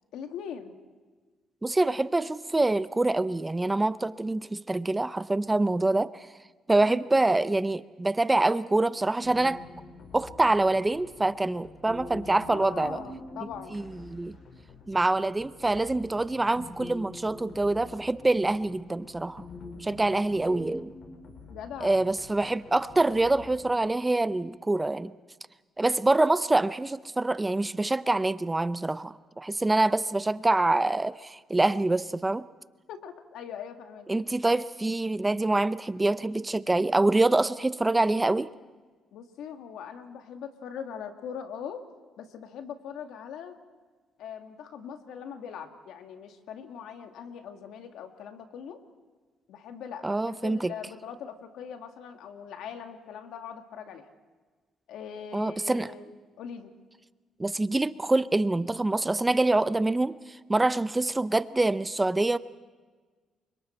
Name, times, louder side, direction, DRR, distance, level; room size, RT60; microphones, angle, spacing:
voice 1, 0.1-0.8 6.8-7.0 12.5-13.8 21.5-22.0 32.9-34.1 39.1-41.8 42.2-43.6 44.2-48.8 49.5-54.1 54.9-56.7, left 7 dB, 80° left, 1.9 m, -41 dB
voice 2, 1.6-6.3 6.7-9.6 10.1-13.0 13.7-14.4 14.9-19.4 19.8-20.9 21.8-25.1 25.8-32.5 34.1-38.5 50.0-50.7 55.3-55.9 57.4-60.2 60.5-62.4, right 2 dB, 15° right, 0.6 m, -25 dB
sound 1, 9.2-23.7, left 2 dB, 55° left, 5.0 m, -46 dB
29.5 x 24.5 x 4.4 m
cardioid pair, 85°, 0 cm